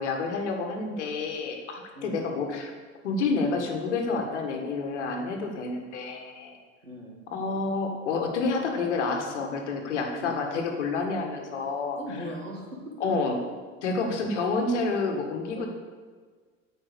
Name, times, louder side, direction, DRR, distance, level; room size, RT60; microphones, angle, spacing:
voice 1, 0.0-2.7 3.0-6.5 7.3-12.0 13.0-13.3 13.8-15.7, left 3 dB, 65° left, 3 dB, 1.6 m, -29 dB
voice 2, 1.9-2.3 6.8-7.2 10.0-10.4 12.0-12.8 15.5-15.7, equal, 85° right, -1 dB, 1.9 m, -38 dB
9.0 x 5.2 x 6.6 m, 1.5 s
figure-of-eight pair, 75°, 37 cm